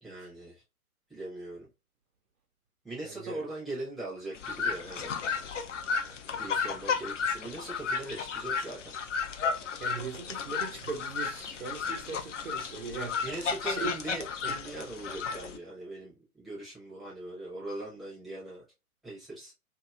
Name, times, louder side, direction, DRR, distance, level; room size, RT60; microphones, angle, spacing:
voice 1, 0.0-0.6 1.1-1.7 2.8-5.2 6.4-8.9 13.2-18.6 19.0-19.5, right 2 dB, ahead, 0.7 m, -40 dB
voice 2, 3.0-3.5 6.9-7.0 9.8-13.2 13.6-14.0 14.4-14.6, right 4 dB, 60° right, 0.7 m, -39 dB
sound 1, 4.3-15.6, left 5 dB, 55° left, 0.6 m, -33 dB
2.9 x 2.7 x 2.3 m
figure-of-eight pair, 120°, 44 cm